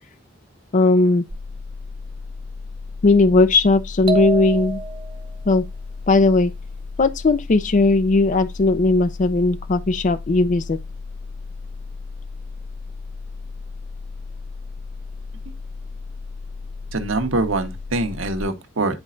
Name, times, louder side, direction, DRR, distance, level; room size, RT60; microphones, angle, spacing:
voice 1, 0.7-1.2 3.0-4.8 5.5-5.6 6.1-6.5 7.0-10.8, left 3 dB, 40° left, 0.4 m, -17 dB
sound 1, 1.3-18.4, left 4 dB, 45° right, 1.7 m, -35 dB
sound 2, 4.1-5.3, right 4 dB, 25° right, 0.7 m, -26 dB
voice 2, 16.9-19.0, right 2 dB, 85° right, 1.1 m, -24 dB
10.0 x 4.2 x 2.5 m
head